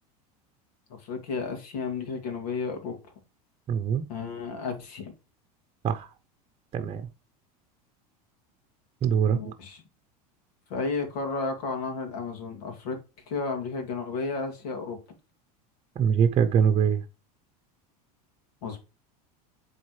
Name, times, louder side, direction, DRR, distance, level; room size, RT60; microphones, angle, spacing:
voice 1, 0.9-3.1 4.1-5.1 9.3-9.8 10.7-13.0 13.3-15.0 18.6-18.8, left 4 dB, 75° left, 2.6 m, -32 dB
voice 2, 3.7-4.0 5.8-6.1 6.7-7.0 9.0-9.5 16.0-17.0, right 7 dB, 30° right, 0.8 m, -23 dB
7.5 x 4.1 x 3.3 m
supercardioid pair, 115°, 20 cm